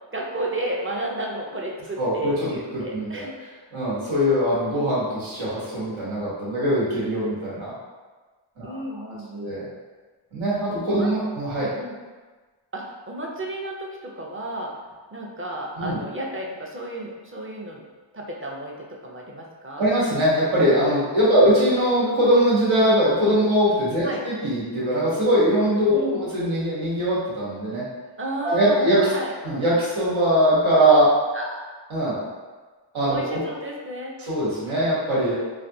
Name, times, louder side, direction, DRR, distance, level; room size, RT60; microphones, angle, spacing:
voice 1, 0.1-3.3 8.6-9.6 10.9-11.1 11.8-12.0 12.7-14.7 15.1-17.8 18.1-19.9 21.3-21.5 24.0-24.2 25.9-26.2 28.2-29.3 31.3-31.6 33.1-34.1, right 1 dB, 30° right, -2 dB, 0.6 m, -32 dB
voice 2, 2.0-3.2 3.7-7.7 8.6-8.7 9.3-9.6 10.3-11.7 15.8-16.0 19.8-27.8 28.4-29.0 29.4-31.1 31.9-32.2 32.9-33.4 34.2-35.3, equal, 85° right, -9 dB, 1.2 m, -21 dB
3.3 x 2.5 x 2.7 m, 1.4 s
wide cardioid pair, 50°, 47 cm